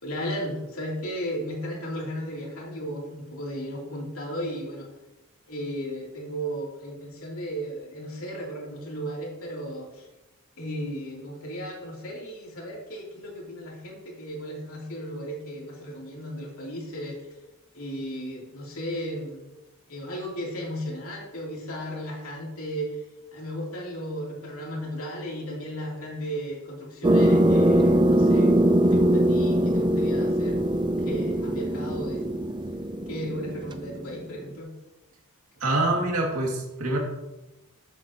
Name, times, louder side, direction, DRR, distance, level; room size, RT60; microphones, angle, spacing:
voice 1, 0.0-4.9 5.5-10.1 10.6-17.2 17.7-19.4 19.9-23.0 23.3-28.6 28.8-30.6 31.0-32.4 33.1-34.7, equal, 70° left, -3 dB, 3.2 m, -35 dB
sound 1, 27.0-34.2, right 1 dB, 20° right, 0.5 m, -22 dB
voice 2, 35.6-37.0, right 2 dB, 80° right, -1 dB, 2.4 m, -25 dB
13.0 x 8.2 x 3.0 m, 1.0 s
head